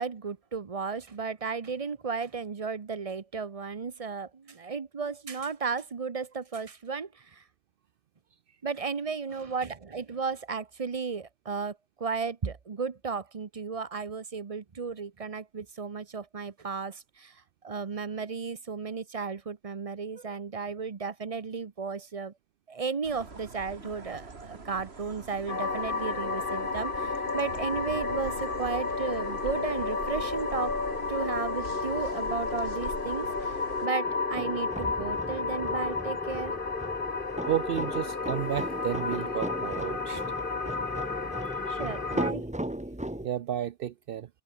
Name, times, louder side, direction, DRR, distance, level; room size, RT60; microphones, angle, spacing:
voice 1, 0.0-7.4 8.6-17.3 17.6-22.3 22.7-30.7 31.1-36.5 41.7-42.5, right 5 dB, 35° right, 0.9 m, -34 dB
sound 1, 23.0-33.9, right 3 dB, 90° right, 2.7 m, -44 dB
sound 2, 25.5-42.3, left 4 dB, 55° left, 2.0 m, -32 dB
sound 3, 34.0-43.3, right 1 dB, 5° right, 0.9 m, -38 dB
voice 2, 37.5-40.2 41.4-41.8 43.2-44.3, right 10 dB, 65° right, 0.8 m, -32 dB
omnidirectional pair, 1.0 m